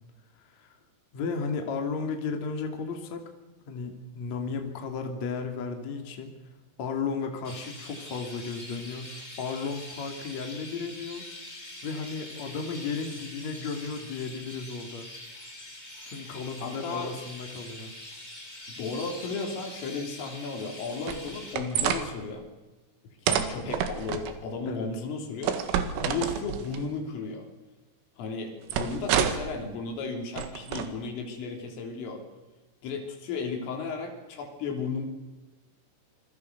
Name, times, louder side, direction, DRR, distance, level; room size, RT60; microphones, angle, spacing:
voice 1, 1.1-3.2 3.7-6.3 6.8-9.1 9.4-11.3 11.8-15.1 16.1-17.9 24.7-24.9, left 5 dB, 40° left, 4 dB, 3.2 m, -34 dB
Chirp tweet, 7.4-21.6, left 1 dB, 10° left, 3.5 m, -44 dB
voice 2, 16.6-17.2 18.7-22.5 23.2-25.6 26.0-27.5 28.2-32.2 32.8-35.0, left 4 dB, 75° left, 4 dB, 5.9 m, -34 dB
sound 1, 21.1-22.0 23.3-24.3 25.4-26.8 28.7-29.5 30.4-30.9, right 8 dB, 85° right, 4.4 m, -28 dB
27.5 x 23.5 x 6.8 m, 1.1 s
omnidirectional pair, 5.9 m